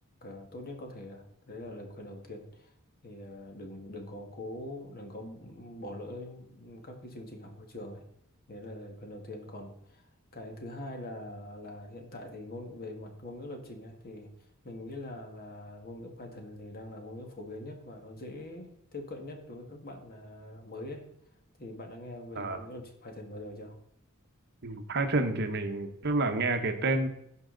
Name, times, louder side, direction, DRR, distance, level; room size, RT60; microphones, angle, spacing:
voice 1, 0.2-2.7 3.0-8.0 8.5-14.3 14.6-21.1 21.6-23.8, left 1 dB, 45° left, 4 dB, 1.8 m, -43 dB
voice 2, 22.4-22.7 24.6-27.1, right 2 dB, 50° right, 6 dB, 1.1 m, -29 dB
16.0 x 5.5 x 3.9 m, 0.73 s
head